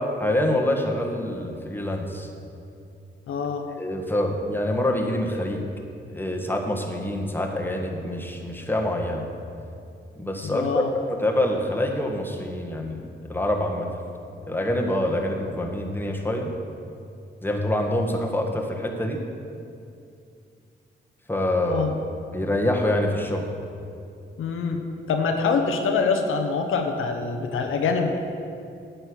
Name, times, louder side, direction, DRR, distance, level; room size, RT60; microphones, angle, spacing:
voice 1, 0.0-2.3 3.8-5.7 6.1-9.2 10.2-13.9 14.5-16.5 17.4-19.2 21.3-21.9 22.3-23.5, left 1 dB, 10° left, 1 dB, 1.5 m, -26 dB
voice 2, 3.3-3.6 10.4-10.9 21.7-21.9 24.4-24.8 25.1-28.1, left 5 dB, 85° left, 4 dB, 0.8 m, -25 dB
9.2 x 6.8 x 6.1 m, 2.5 s
cardioid pair, 60°, 20 cm